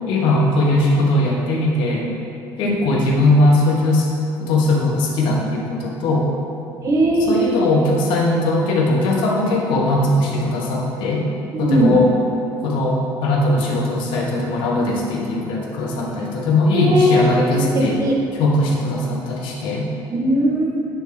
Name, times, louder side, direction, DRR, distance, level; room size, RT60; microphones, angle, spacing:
voice 1, 0.1-2.1 2.6-4.1 4.4-6.3 7.2-11.3 11.6-12.1 12.6-18.0 18.3-19.9, left 2 dB, 75° left, -2 dB, 1.3 m, -19 dB
voice 2, 6.8-7.6 11.5-12.0 16.7-17.2 17.7-18.1 20.1-20.8, right 1 dB, 40° right, -1 dB, 1.3 m, -18 dB
9.2 x 3.4 x 4.9 m, 2.7 s
cardioid pair, 115°, 8 cm